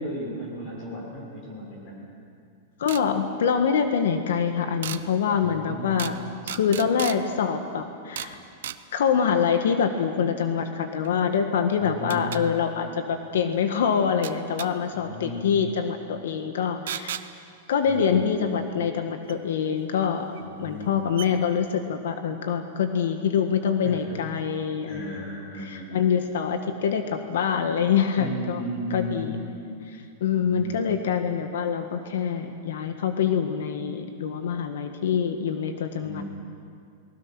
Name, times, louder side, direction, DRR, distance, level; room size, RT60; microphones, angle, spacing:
voice 1, 0.0-2.0 5.4-6.0 11.8-12.3 15.0-15.5 17.8-18.5 20.4-21.0 23.8-24.2 24.9-26.1 28.2-29.4 30.4-30.8 36.0-36.2, equal, 30° left, -3 dB, 6.8 m, -36 dB
voice 2, 2.8-8.4 8.9-17.2 17.7-20.3 20.6-25.2 25.5-28.6 28.9-29.4 29.9-36.2, left 7 dB, 80° left, 6 dB, 1.6 m, -25 dB
sound 1, 2.9-3.0 4.8-5.0 6.0-6.2 6.5-7.2 8.2-8.4 8.6-8.8 11.0-11.1 12.1-12.4 14.2-14.7 16.9-17.3 19.3-19.4 20.4-20.5 20.8-20.9 21.2-21.3, right 11 dB, 70° right, 1.0 m, -34 dB
29.5 x 20.0 x 6.2 m, 2.3 s
supercardioid pair, 175°, 0 cm